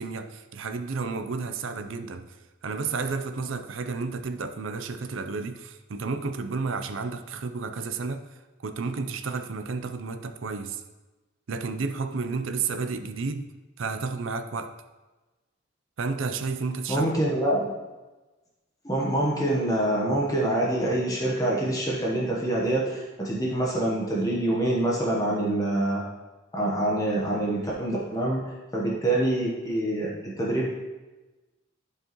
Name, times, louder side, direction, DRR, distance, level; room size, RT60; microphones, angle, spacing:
voice 1, 0.0-2.3 2.6-10.8 11.5-13.5 13.8-14.7 16.0-17.1 17.4-17.5, right 4 dB, 70° right, 8 dB, 0.5 m, -31 dB
voice 2, 16.9-17.7 18.8-26.0 26.5-28.4 28.7-30.7, right 1 dB, 15° left, -4 dB, 1.0 m, -25 dB
11.0 x 4.8 x 3.0 m, 1.2 s
head